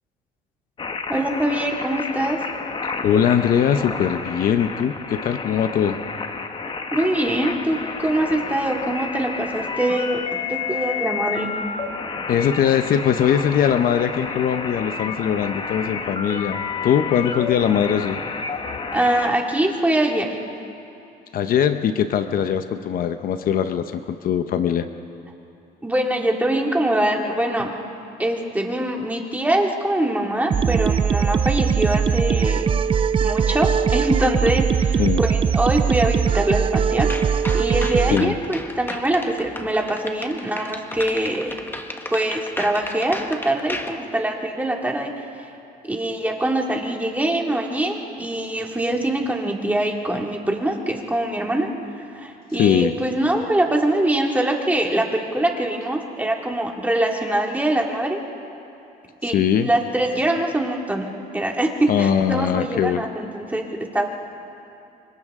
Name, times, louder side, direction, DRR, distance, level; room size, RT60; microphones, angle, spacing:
sound 1, 0.8-19.3, left 5 dB, 30° left, 1.3 m, -30 dB
voice 1, 1.1-2.4 6.9-10.2 10.5-11.5 18.9-20.3 25.8-27.7 28.2-32.7 33.2-37.1 37.5-41.5 42.1-45.1 45.4-45.5 45.8-51.7 52.0-58.2 59.2-61.1 61.3-63.6 63.9-64.1, right 1 dB, 10° right, 0 dB, 2.3 m, -23 dB
voice 2, 3.0-6.0 12.3-18.2 21.3-24.9 35.0-35.2 38.1-38.3 52.6-53.0 59.3-59.7 61.9-63.0, left 8 dB, 60° left, 9 dB, 0.8 m, -21 dB
sound 2, 30.5-38.2, right 7 dB, 30° right, 0.4 m, -20 dB
sound 3, 37.0-43.9, left 1 dB, 10° left, 1.4 m, -34 dB
30.0 x 25.0 x 3.7 m, 2.7 s
cardioid pair, 110°, 17 cm